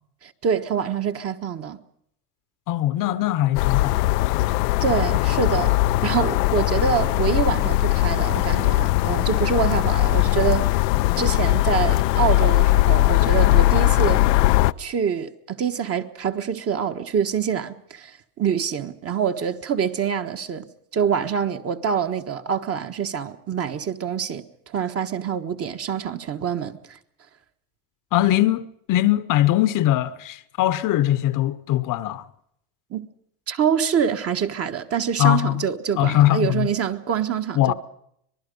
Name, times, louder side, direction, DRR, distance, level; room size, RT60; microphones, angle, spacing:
voice 1, 0.2-1.8 4.8-5.7 6.0-10.8 11.2-14.2 14.8-27.0 32.9-33.1 33.5-37.7, right 7 dB, 30° right, 1.4 m, -25 dB
voice 2, 2.7-4.0 28.1-32.2 35.2-35.6 36.0-36.7 37.6-37.7, left 14 dB, 40° left, 1.0 m, -21 dB
sound 1, 3.5-14.7, left 18 dB, 80° left, 0.7 m, -20 dB
25.5 x 19.5 x 5.4 m
supercardioid pair, 120°, 49 cm